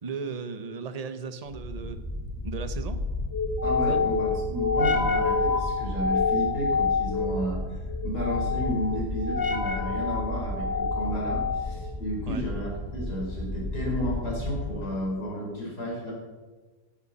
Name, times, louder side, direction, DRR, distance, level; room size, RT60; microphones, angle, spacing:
voice 1, 0.0-2.0 2.4-3.0 3.9-4.0 12.3-12.4, right 5 dB, 35° right, 9 dB, 0.7 m, -36 dB
sound 1, 1.5-14.9, left 3 dB, 15° left, 1.4 m, -28 dB
voice 2, 3.6-7.8 8.0-16.1, equal, 75° left, -3 dB, 5.2 m, -32 dB
17.0 x 11.0 x 4.2 m, 1.3 s
omnidirectional pair, 1.7 m